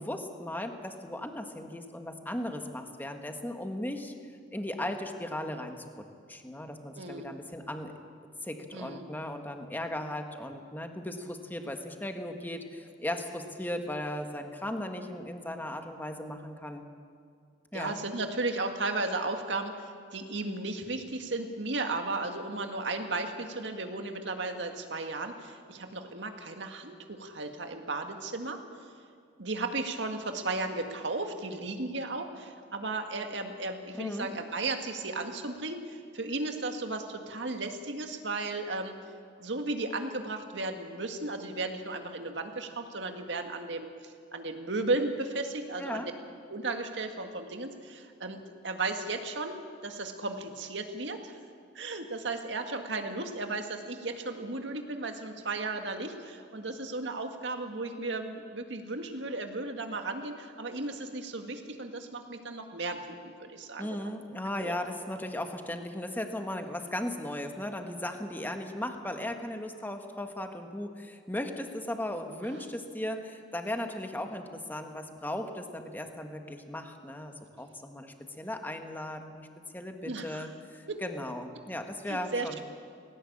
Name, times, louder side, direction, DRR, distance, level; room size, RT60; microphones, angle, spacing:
voice 1, 0.0-4.1 4.5-5.8 6.3-7.9 8.4-16.8 17.7-18.0 33.9-34.3 45.8-46.1 63.8-79.5 79.7-82.6, left 1 dB, 10° left, 5 dB, 1.6 m, -37 dB
voice 2, 7.0-7.3 8.7-9.0 17.7-28.6 29.4-38.9 39.4-43.9 44.3-46.1 46.5-49.6 49.8-51.4 51.8-64.0 64.6-64.7 68.0-68.1 80.1-80.5 80.9-81.0 82.1-82.6, right 2 dB, 80° right, 5 dB, 1.9 m, -35 dB
18.5 x 17.5 x 8.7 m, 2.3 s
head